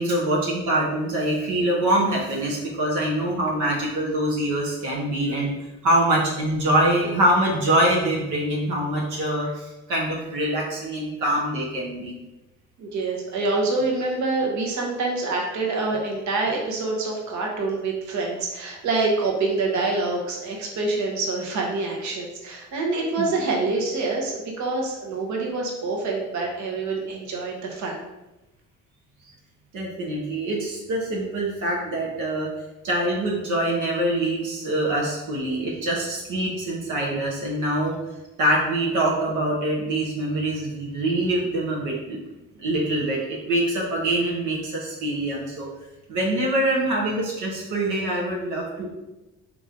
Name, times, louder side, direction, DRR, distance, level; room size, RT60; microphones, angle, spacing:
voice 1, 0.0-5.5 5.8-12.1 23.2-23.3 29.7-32.5 32.8-38.0 38.4-42.2 42.6-45.7 46.1-48.9, right 1 dB, 90° right, -3 dB, 0.9 m, -24 dB
voice 2, 12.8-28.0, right 3 dB, 70° right, 0 dB, 1.0 m, -26 dB
3.8 x 3.0 x 3.7 m, 1.0 s
cardioid pair, 90°, 30 cm